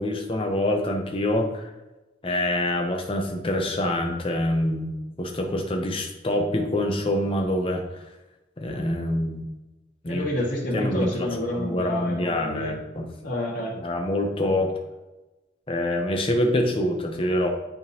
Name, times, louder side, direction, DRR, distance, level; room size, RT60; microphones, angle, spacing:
voice 1, 0.0-1.7 2.2-8.0 8.6-9.5 10.0-10.3 10.7-13.1 13.8-14.7 15.7-17.5, left 1 dB, 30° left, 3 dB, 0.8 m, -26 dB
voice 2, 10.1-12.7 13.2-13.8, left 1 dB, 85° left, -11 dB, 1.8 m, -29 dB
9.2 x 3.7 x 2.8 m, 1.1 s
head